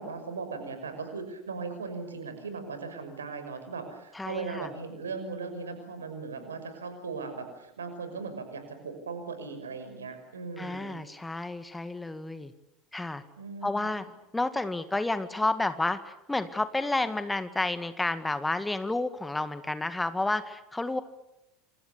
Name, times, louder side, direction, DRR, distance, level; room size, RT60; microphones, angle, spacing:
voice 1, 0.0-11.0 13.4-14.0, right 4 dB, 75° right, 8 dB, 5.9 m, -38 dB
voice 2, 4.1-4.7 10.6-12.5 12.9-13.2 13.6-14.0 14.3-21.0, left 2 dB, 10° left, 11 dB, 1.9 m, -30 dB
28.0 x 27.5 x 7.0 m, 0.87 s
figure-of-eight pair, 75°, 0 cm